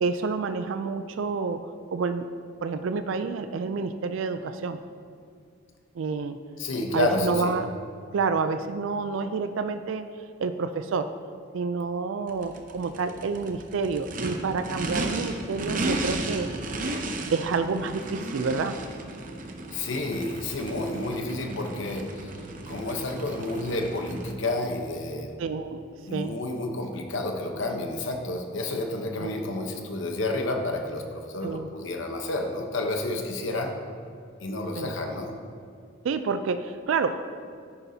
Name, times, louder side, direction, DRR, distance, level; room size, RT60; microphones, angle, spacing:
voice 1, 0.0-1.6 1.9-2.2 2.6-4.8 5.9-6.4 6.9-7.7 8.1-10.0 10.4-11.1 11.5-16.5 17.3-18.8 25.4-26.4 29.2-29.3 31.4-31.7 34.7-34.9 36.0-37.2, right 4 dB, 80° right, 10 dB, 0.4 m, -28 dB
voice 2, 6.6-7.6 19.7-22.3 22.7-25.4 26.1-33.8 34.4-35.3, left 2 dB, 70° left, 3 dB, 0.9 m, -30 dB
Race car auto racing / Idling / Accelerating revving vroom, 12.3-24.3, right 2 dB, 40° right, 0.7 m, -35 dB
9.9 x 9.7 x 2.8 m, 2.3 s
head